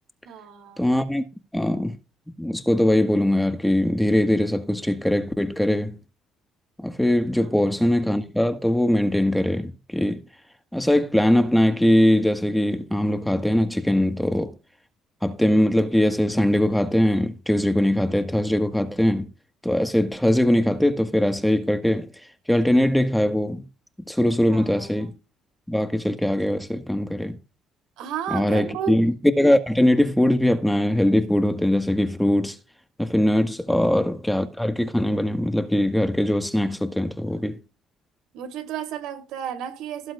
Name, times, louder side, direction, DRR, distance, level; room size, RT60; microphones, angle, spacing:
voice 1, 0.2-0.8 7.4-7.5 24.5-24.9 28.0-28.9 38.3-40.1, right 9 dB, 80° right, 3.2 m, -33 dB
voice 2, 0.8-1.3 1.5-2.0 2.4-6.0 6.8-10.2 10.7-14.5 15.2-19.3 19.6-22.1 22.5-23.6 24.1-25.1 25.7-27.4 28.3-32.6 33.0-37.6, left 1 dB, 5° left, 1.6 m, -21 dB
17.5 x 7.8 x 2.5 m
supercardioid pair, 60°, 0 cm